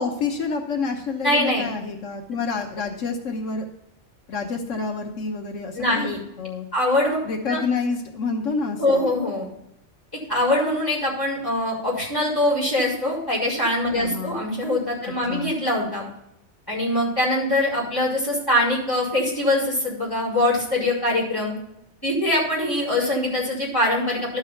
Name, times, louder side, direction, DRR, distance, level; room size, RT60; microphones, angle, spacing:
voice 1, 0.0-3.6 4.3-6.7 7.2-9.1 13.9-14.4 15.0-15.5, left 4 dB, 90° left, 3 dB, 1.5 m, -28 dB
voice 2, 1.2-1.6 5.7-6.2 6.7-7.2 7.5-7.6 8.8-9.5 10.3-16.0 16.7-21.5 22.0-24.4, left 1 dB, 15° left, -6 dB, 4.8 m, -23 dB
12.0 x 5.6 x 5.6 m, 0.81 s
omnidirectional pair, 1.3 m